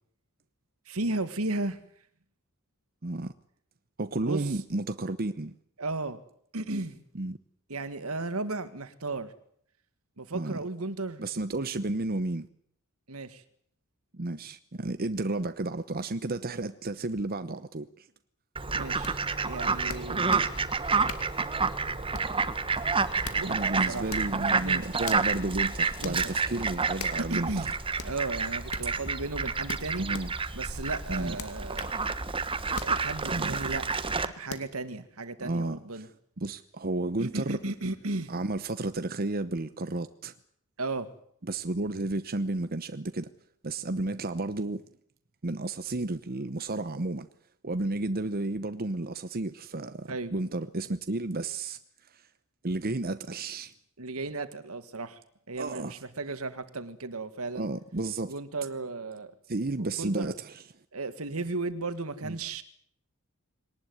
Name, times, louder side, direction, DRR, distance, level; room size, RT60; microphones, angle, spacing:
voice 1, 0.9-1.8 4.3-4.5 5.8-6.2 6.5-7.0 7.7-9.3 10.2-11.2 13.1-13.4 18.7-20.7 23.3-24.1 24.6-24.8 26.0-26.2 27.2-27.7 28.0-30.1 30.5-31.9 32.8-36.1 37.2-38.3 40.8-41.1 50.1-50.3 54.0-55.2 55.5-57.7 58.3-59.3 59.8-60.3 60.9-62.6, right 2 dB, 75° right, 1.9 m, -35 dB
voice 2, 3.0-3.3 4.0-5.5 7.1-7.4 10.3-10.6 11.2-12.5 14.1-18.1 20.2-20.5 23.4-27.7 30.0-30.3 31.1-31.4 33.3-33.6 35.4-36.1 36.4-37.6 38.3-40.3 41.4-43.3 43.6-44.8 45.4-47.3 47.6-51.8 52.1-52.3 52.6-53.7 55.6-55.9 57.5-58.3 59.5-60.6 62.2-62.4, right 2 dB, 45° right, 0.9 m, -32 dB
Fowl, 18.6-34.3, right 4 dB, 25° right, 1.3 m, -29 dB
sound 1, 19.0-19.2 19.9-20.5 21.1-21.3 22.1-22.4 23.0-23.5 24.1-24.3 25.0-25.3 26.0-26.2 27.0-27.2 28.0-28.2 28.7-28.9 29.7-30.3 31.4-32.0 32.8-33.0 33.5-33.7 34.5-34.7, left 5 dB, 75° left, 2.5 m, -40 dB
22.0 x 19.0 x 9.6 m
head